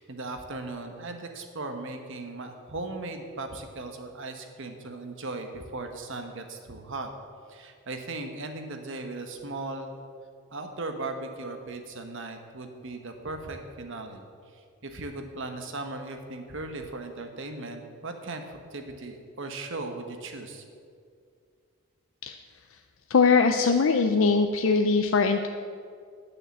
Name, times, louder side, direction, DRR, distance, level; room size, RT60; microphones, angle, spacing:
voice 1, 0.0-7.1 7.5-9.9 10.5-14.3 14.5-20.6, right 2 dB, 60° right, 5 dB, 1.2 m, -37 dB
voice 2, 23.1-25.5, left 4 dB, 65° left, 6 dB, 0.5 m, -21 dB
10.0 x 6.6 x 7.3 m, 2.2 s
head